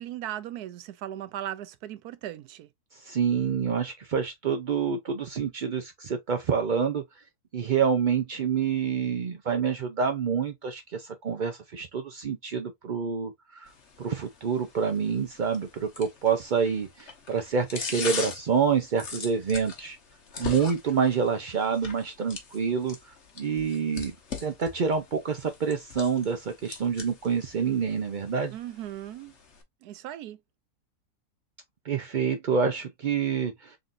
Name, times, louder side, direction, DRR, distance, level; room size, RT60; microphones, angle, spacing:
voice 1, 0.0-2.7 28.5-29.3 29.8-30.4, right 12 dB, 85° right, 1.1 m, -37 dB
voice 2, 2.9-7.0 7.5-13.7 14.0-20.0 20.4-24.1 24.4-28.5 31.8-33.8, right 6 dB, 65° right, 0.4 m, -27 dB
sound 1, 13.7-29.6, left 5 dB, 50° left, 1.3 m, -41 dB
3.9 x 3.7 x 2.5 m
omnidirectional pair, 1.6 m